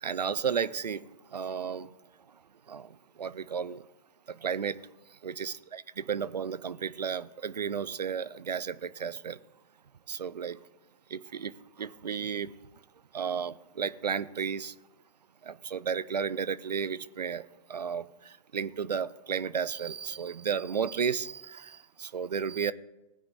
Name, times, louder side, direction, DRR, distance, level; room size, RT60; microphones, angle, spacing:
voice 1, 0.0-1.9 2.7-3.9 4.3-4.8 5.2-5.8 6.1-9.4 10.1-10.6 11.1-12.5 13.1-14.7 15.4-22.7, right 7 dB, 75° right, 17 dB, 0.6 m, -33 dB
19.0 x 9.4 x 2.8 m, 0.99 s
figure-of-eight pair, 120°, 21 cm